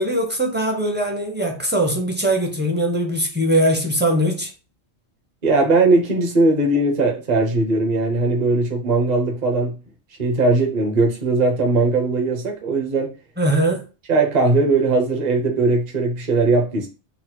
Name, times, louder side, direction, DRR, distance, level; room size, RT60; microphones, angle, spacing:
voice 1, 0.0-4.5 13.4-13.8, right 1 dB, 10° right, 0.6 m, -21 dB
voice 2, 5.4-9.7 10.2-13.1 14.1-16.9, right 3 dB, 40° right, 0.9 m, -19 dB
4.1 x 2.0 x 4.4 m
omnidirectional pair, 1.2 m